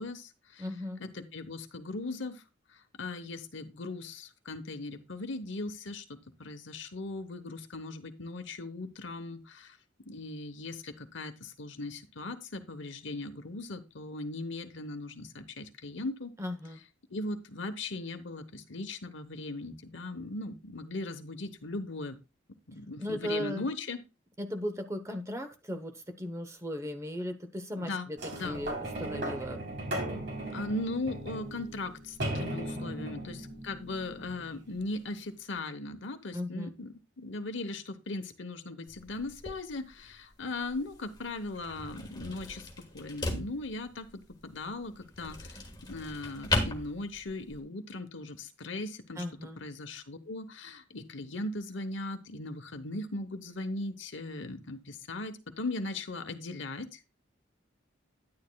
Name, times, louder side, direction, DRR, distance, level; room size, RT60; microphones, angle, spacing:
voice 1, 0.0-0.6 1.0-2.4 3.0-9.8 10.1-16.3 17.1-22.2 22.7-24.0 27.8-28.6 30.5-42.7 42.9-45.6 45.9-49.2 49.6-57.1, left 2 dB, 65° left, 10 dB, 1.0 m, -38 dB
voice 2, 0.6-1.0 16.4-16.8 23.0-23.7 24.4-30.2 32.7-33.1 36.3-36.7 49.2-49.6, left 1 dB, 15° right, 7 dB, 0.9 m, -37 dB
sound 1, 28.2-34.9 35.6-35.7, right 1 dB, 60° right, 3.6 m, -37 dB
sound 2, 38.9-47.6, left 2 dB, 20° left, 1.5 m, -38 dB
10.5 x 9.6 x 2.3 m, 0.28 s
head